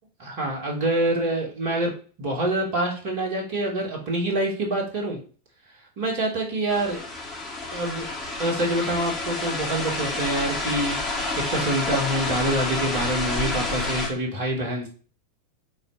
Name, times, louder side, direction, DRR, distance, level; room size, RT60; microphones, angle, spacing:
voice 1, 0.2-1.9 2.2-5.2 6.0-7.0 7.7-8.1 8.4-14.9, right 1 dB, 50° right, -1 dB, 3.1 m, -26 dB
sound 1, 6.7-14.1, left 2 dB, 20° left, 3.0 m, -29 dB
6.3 x 4.3 x 5.6 m, 0.39 s
figure-of-eight pair, 90°, 0 cm